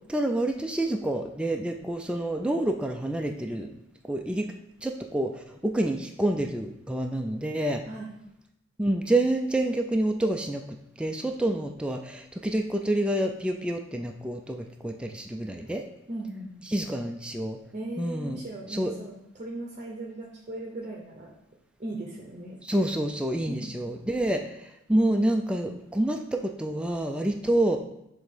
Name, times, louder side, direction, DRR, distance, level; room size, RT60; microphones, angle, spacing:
voice 1, 0.1-3.7 4.0-4.5 4.8-7.8 8.8-15.8 16.7-17.6 18.0-18.4 18.7-18.9 22.6-27.8, right 1 dB, 5° right, 3 dB, 0.4 m, -28 dB
voice 2, 16.1-16.7 17.7-21.3 21.8-22.6 23.5-23.7, right 2 dB, 35° right, -1 dB, 0.7 m, -38 dB
6.4 x 3.5 x 5.0 m, 0.83 s
head